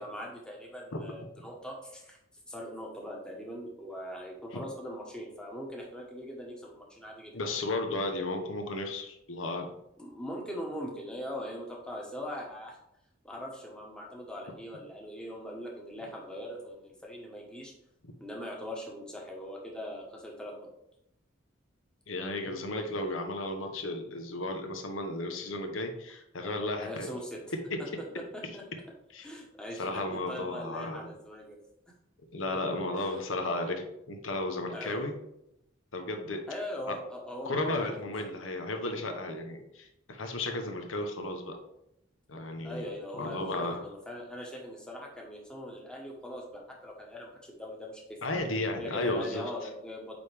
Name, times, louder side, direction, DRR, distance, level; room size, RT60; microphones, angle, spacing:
voice 1, 0.0-2.2 2.5-7.4 10.0-12.8 13.2-17.7 18.2-20.7 26.8-27.4 28.1-28.2 28.5-28.6 29.2-31.6 32.9-33.2 34.7-35.1 36.5-38.1 42.6-48.2 48.8-50.2, equal, 5° left, -2 dB, 1.1 m, -41 dB
voice 2, 7.3-9.7 18.0-18.1 22.1-27.1 27.7-27.8 29.1-29.3 29.8-31.1 32.3-35.1 35.9-36.4 36.9-37.0 37.5-41.6 42.3-42.9 43.2-43.8 48.2-49.4, left 2 dB, 80° left, 5 dB, 0.9 m, -34 dB
8.8 x 3.5 x 3.4 m, 0.80 s
head